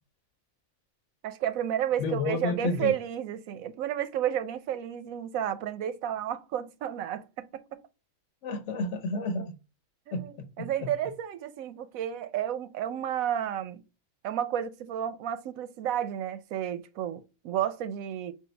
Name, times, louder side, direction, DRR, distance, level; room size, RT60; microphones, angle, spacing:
voice 1, 1.2-7.8 10.1-13.8 14.2-18.3, right 10 dB, 85° right, 1.0 m, -32 dB
voice 2, 2.0-2.9 8.4-9.6 10.1-10.9, left 3 dB, 65° left, 1.0 m, -31 dB
6.3 x 2.4 x 3.3 m
omnidirectional pair, 1.4 m